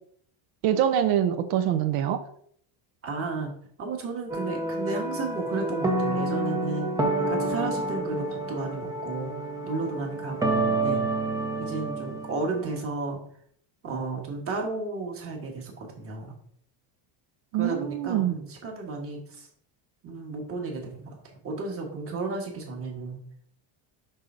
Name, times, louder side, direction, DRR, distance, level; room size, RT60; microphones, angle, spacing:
voice 1, 0.6-2.2 17.5-18.4, right 10 dB, 85° right, 7 dB, 0.7 m, -24 dB
voice 2, 3.0-3.5 3.8-6.9 7.3-11.0 11.6-13.2 13.8-16.3 17.5-19.5 20.0-21.2 21.4-23.2, right 3 dB, 25° right, 1 dB, 1.3 m, -33 dB
sound 1, 4.3-12.7, right 2 dB, 10° right, 0.3 m, -29 dB
5.5 x 3.5 x 5.2 m, 0.63 s
cardioid pair, 175°, 49 cm